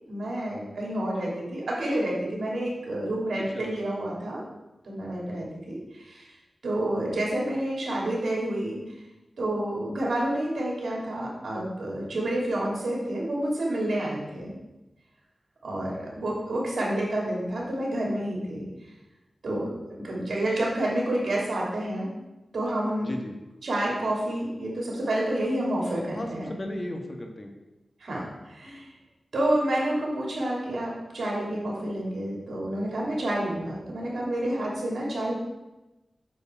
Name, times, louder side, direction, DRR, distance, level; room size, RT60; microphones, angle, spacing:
voice 1, 0.1-4.4 4.8-6.3 6.6-8.8 9.4-14.5 15.6-18.7 19.4-22.1 22.5-23.1 23.6-26.6 28.0-28.9 29.3-35.4, right 1 dB, 75° right, -3 dB, 2.9 m, -29 dB
voice 2, 23.0-23.4 26.1-27.5, left 1 dB, 40° left, 3 dB, 1.4 m, -35 dB
7.7 x 7.1 x 4.5 m, 1.0 s
cardioid pair, 60°, 0 cm